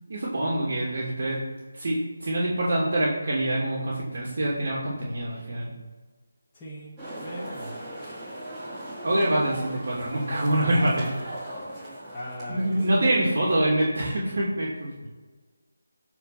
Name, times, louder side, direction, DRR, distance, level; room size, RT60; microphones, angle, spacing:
voice 1, 0.1-1.4 1.7-5.7 9.0-11.1 12.5-14.9, right 1 dB, 50° right, -5 dB, 3.0 m, -25 dB
voice 2, 6.5-6.9 7.2-7.8 12.1-13.5 15.0-15.1, left 1 dB, 10° left, -11 dB, 2.0 m, -39 dB
sound 1, 7.0-13.5, right 1 dB, 10° right, 3.3 m, -39 dB
12.5 x 4.9 x 6.1 m, 1.4 s
figure-of-eight pair, 170°, 0 cm